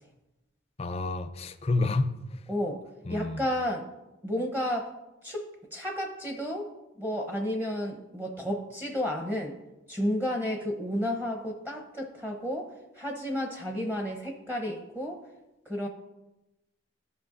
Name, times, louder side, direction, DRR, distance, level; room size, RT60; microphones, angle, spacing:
voice 1, 0.8-2.1 3.1-3.4, left 3 dB, 30° left, 9 dB, 0.4 m, -29 dB
voice 2, 2.5-2.8 3.1-3.9 4.2-4.9 5.2-6.7 7.0-9.5 9.9-12.7 13.0-15.2 15.7-15.9, equal, 10° right, 2 dB, 0.8 m, -32 dB
13.5 x 5.6 x 2.5 m, 0.99 s
head